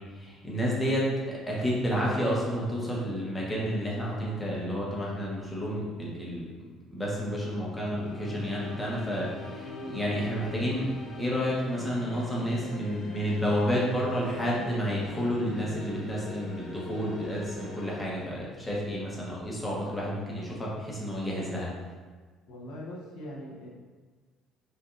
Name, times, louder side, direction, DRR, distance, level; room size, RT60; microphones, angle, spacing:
voice 1, 0.1-6.5 6.9-21.7, equal, 10° left, -5 dB, 1.0 m, -30 dB
sound 1, 7.8-18.0, left 2 dB, 45° left, 0.9 m, -42 dB
voice 2, 22.5-23.7, left 1 dB, 80° left, -3 dB, 0.9 m, -41 dB
5.5 x 2.6 x 2.5 m, 1.4 s
cardioid pair, 135°, 0 cm